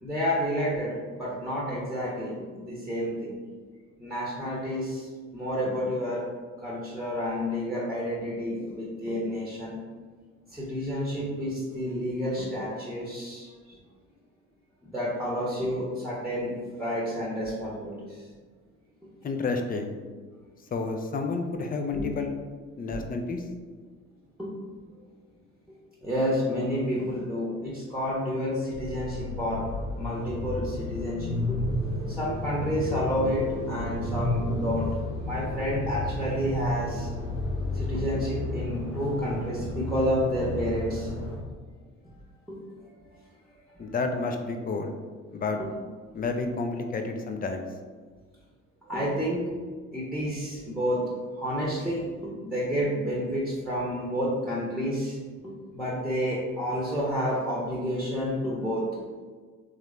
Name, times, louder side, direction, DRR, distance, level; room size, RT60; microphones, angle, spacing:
voice 1, 0.0-3.4 4.0-6.2 6.6-9.8 10.5-13.8 14.8-16.5 16.8-18.2 21.9-22.1 24.4-24.5 26.0-29.7 30.0-31.6 32.1-34.9 35.2-37.1 37.7-41.1 42.5-42.6 43.0-43.1 43.7-43.8 45.6-45.7 48.9-49.5 49.9-51.0 51.3-55.2 55.4-58.9, equal, ahead, -6 dB, 1.1 m, -30 dB
voice 2, 19.2-20.0 20.7-22.3 22.8-23.4 43.8-45.0 45.3-45.6 46.1-47.7, left 3 dB, 25° left, 5 dB, 0.5 m, -30 dB
sound 1, 28.7-41.4, left 1 dB, 85° left, 1.1 m, -32 dB
3.6 x 3.1 x 3.2 m, 1.5 s
figure-of-eight pair, 45°, 40 cm